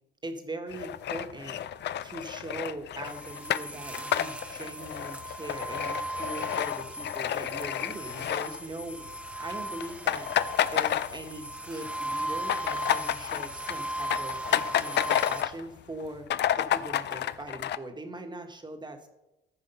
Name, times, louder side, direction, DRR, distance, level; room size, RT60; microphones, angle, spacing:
voice 1, 0.2-1.6 2.0-9.1 9.4-10.3 10.7-16.3 16.6-19.1, right 2 dB, 20° right, 5 dB, 1.5 m, -41 dB
sound 1, 0.7-9.1 9.4-9.5 9.8-11.6 11.9-15.6 16.0-16.1 16.3-17.8, left 11 dB, 60° left, 0.5 m, -30 dB
sound 2, 3.0-15.4, right 1 dB, 5° right, 0.9 m, -37 dB
13.5 x 5.0 x 5.5 m, 0.96 s
cardioid pair, 90°, 20 cm